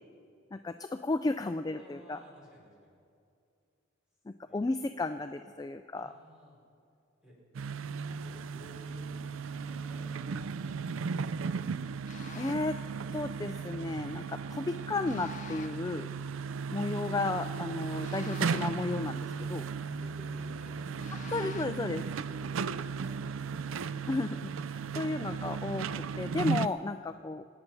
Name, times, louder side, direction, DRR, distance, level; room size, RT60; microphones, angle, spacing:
voice 1, 0.5-2.2 4.3-6.1 12.3-12.8 13.1-16.1 16.7-19.6 21.3-22.0 24.1-27.4, left 2 dB, 20° left, 9 dB, 0.3 m, -33 dB
voice 2, 1.7-3.0 4.4-4.8 6.0-6.6 7.2-7.4 7.8-7.9 8.2-9.2 9.5-12.0 16.3-16.5 19.2-19.3 19.6-21.1 21.4-21.6 22.3-23.6 24.7-25.0 27.0-27.2, equal, 5° right, -5 dB, 5.2 m, -56 dB
sound 1, 7.5-26.7, right 5 dB, 90° right, 0.4 m, -36 dB
sound 2, 12.1-12.8 15.1-15.9 18.0-19.0 21.0-21.9, left 6 dB, 40° left, 0.7 m, -49 dB
25.5 x 8.9 x 5.9 m, 2.5 s
head